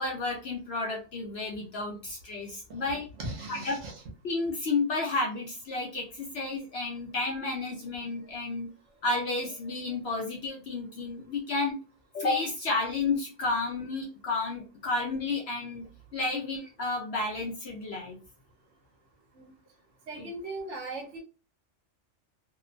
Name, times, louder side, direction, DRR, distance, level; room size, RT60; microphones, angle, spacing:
voice 1, 0.0-3.1 3.5-3.8 4.2-8.7 9.0-11.8 12.1-15.8 16.1-18.2 20.2-20.3, left 3 dB, 60° left, 0 dB, 0.8 m, -31 dB
voice 2, 3.2-3.9 19.4-19.5 20.1-21.2, right 2 dB, 70° right, 1 dB, 1.1 m, -38 dB
2.8 x 2.0 x 2.5 m, 0.33 s
omnidirectional pair, 1.3 m